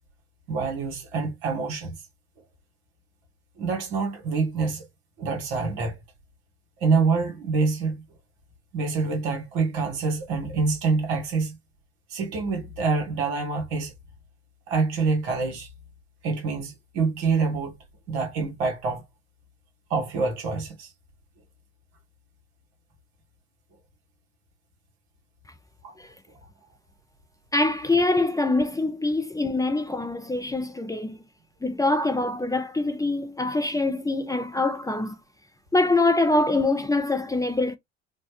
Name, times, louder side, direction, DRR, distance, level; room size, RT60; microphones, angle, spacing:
voice 1, 0.5-2.0 3.6-4.9 5.2-6.0 6.8-8.0 8.7-11.6 12.1-13.9 14.7-15.7 16.2-17.7 18.1-19.0 19.9-20.9 25.8-25.9, right 4 dB, 75° right, 1.7 m, -26 dB
voice 2, 27.5-31.2 31.6-35.2 35.7-37.8, left 2 dB, 10° left, 0.6 m, -24 dB
4.3 x 2.3 x 2.9 m
hypercardioid pair, 60°, 33 cm